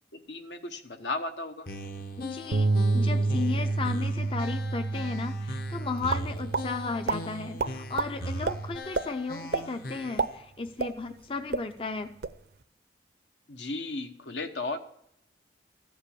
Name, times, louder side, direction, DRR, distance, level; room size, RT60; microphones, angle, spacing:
voice 1, 0.3-1.7 13.5-14.8, left 3 dB, 75° left, 6 dB, 1.2 m, -35 dB
sound 1, 1.7-10.4, equal, 50° left, 0.9 m, -40 dB
voice 2, 2.2-12.1, left 4 dB, 30° left, 7 dB, 0.5 m, -35 dB
Bass guitar, 2.5-8.8, right 3 dB, 85° right, 0.8 m, -30 dB
sound 2, 6.1-6.7 7.1-7.2 7.6-8.1 8.4-8.6 8.9-9.1 9.5-9.7 10.0-11.2 11.5-11.6 12.0-12.4, right 4 dB, 60° right, 0.6 m, -28 dB
14.5 x 5.5 x 8.5 m, 0.74 s
head